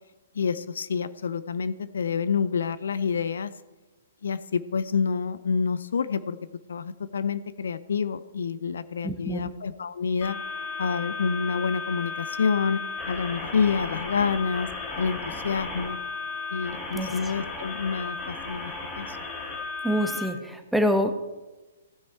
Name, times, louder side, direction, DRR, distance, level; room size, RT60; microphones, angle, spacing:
voice 1, 0.3-3.5 4.2-6.4 6.7-10.4 10.8-12.8 13.1-14.7 15.0-16.0 16.5-19.2, left 6 dB, 65° left, 14 dB, 0.5 m, -28 dB
voice 2, 9.0-9.5 16.9-17.1 19.8-21.2, equal, 5° right, 6 dB, 1.0 m, -26 dB
sound 1, 10.2-20.3, left 3 dB, 25° left, 2.9 m, -35 dB
16.0 x 6.2 x 4.5 m, 1.1 s
figure-of-eight pair, 120°, 0 cm